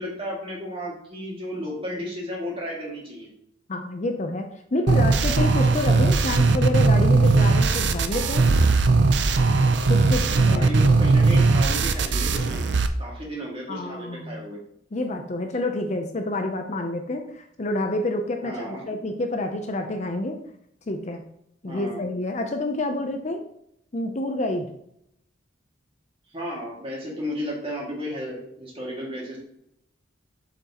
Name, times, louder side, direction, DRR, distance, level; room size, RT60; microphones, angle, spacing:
voice 1, 0.0-3.3 10.2-12.6 13.0-14.6 18.4-18.8 21.6-22.0 26.3-29.4, equal, 30° right, -3 dB, 2.0 m, -33 dB
voice 2, 3.7-8.4 9.9-10.7 13.7-14.4 14.9-20.4 20.9-21.2 21.6-23.4 23.9-24.7, left 2 dB, 35° left, 5 dB, 0.5 m, -28 dB
sound 1, 4.9-12.9, right 3 dB, 60° right, 0.5 m, -19 dB
7.1 x 5.9 x 2.9 m, 0.74 s
head